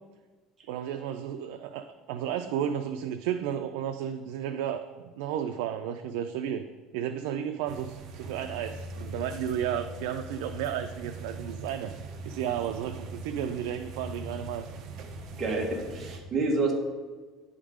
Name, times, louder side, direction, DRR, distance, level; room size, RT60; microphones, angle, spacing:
voice 1, 0.7-4.8 5.2-6.7 6.9-14.7, right 9 dB, 85° right, 7 dB, 0.4 m, -33 dB
sound 1, 7.7-16.2, right 2 dB, 40° right, 0.8 m, -41 dB
voice 2, 15.4-16.7, right 3 dB, 25° right, 1 dB, 1.2 m, -28 dB
10.0 x 3.7 x 5.0 m, 1.4 s
cardioid pair, 165°, 0 cm